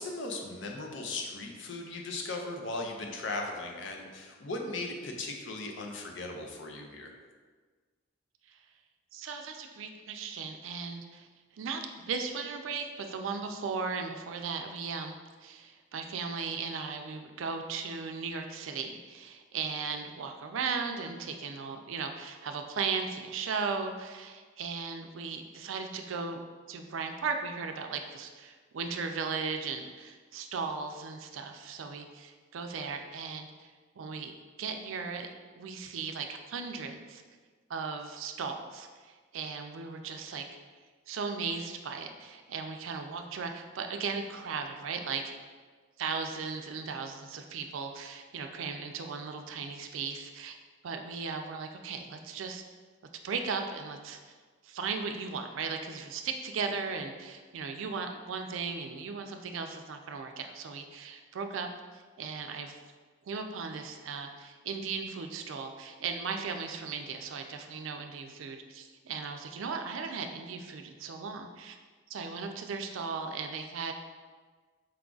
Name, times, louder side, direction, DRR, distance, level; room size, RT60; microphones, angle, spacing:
voice 1, 0.0-7.1, left 2 dB, 65° left, 2 dB, 0.6 m, -37 dB
voice 2, 9.1-11.3 11.5-26.4 26.7-34.3 34.6-37.2 37.7-40.5 41.1-45.2 46.0-50.5 50.8-52.6 53.2-54.2 54.6-62.8 63.2-71.8 72.1-73.9, right 5 dB, 80° right, 5 dB, 0.4 m, -37 dB
4.6 x 2.3 x 3.8 m, 1.4 s
head